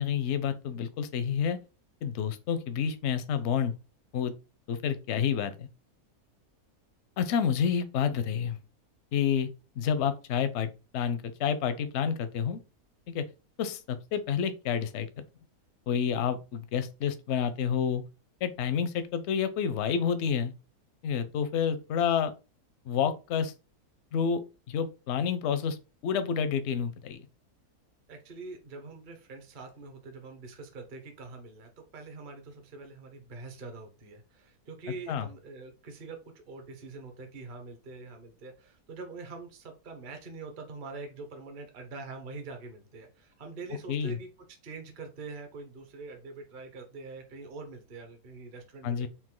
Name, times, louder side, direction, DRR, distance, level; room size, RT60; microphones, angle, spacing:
voice 1, 0.0-1.6 2.0-3.7 4.1-4.3 4.7-5.7 7.2-8.6 9.1-9.5 9.8-12.6 13.1-13.2 13.6-15.2 15.9-18.0 18.4-20.5 21.0-22.3 22.9-23.5 24.1-24.4 24.7-25.8 26.0-27.3 35.1-35.3 43.9-44.2 48.8-49.1, left 7 dB, 65° left, 0.7 m, -29 dB
voice 2, 28.1-44.3 44.6-49.1, right 3 dB, 40° right, 0.8 m, -44 dB
4.3 x 2.5 x 3.8 m
omnidirectional pair, 1.6 m